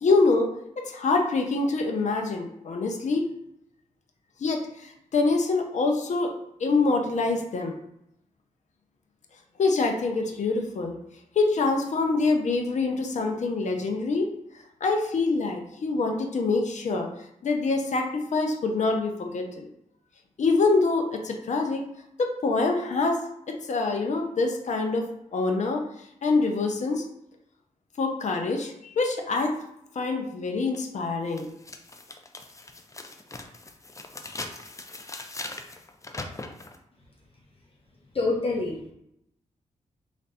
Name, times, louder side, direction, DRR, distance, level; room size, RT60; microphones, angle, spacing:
voice 1, 0.0-0.5 0.8-3.3 4.4-6.3 6.6-7.7 9.6-10.9 11.4-14.3 14.8-17.1 17.4-19.7 20.4-21.8 22.2-25.8 26.2-27.0 28.0-29.6 30.0-31.5, left 3 dB, 60° left, 3 dB, 0.7 m, -25 dB
sound 1, 30.7-30.8 31.3-36.8, left 2 dB, 25° left, 0.5 m, -40 dB
voice 2, 38.1-38.9, left 3 dB, 45° left, -2 dB, 1.0 m, -26 dB
3.2 x 2.5 x 4.1 m, 0.78 s
cardioid pair, 70°, 14 cm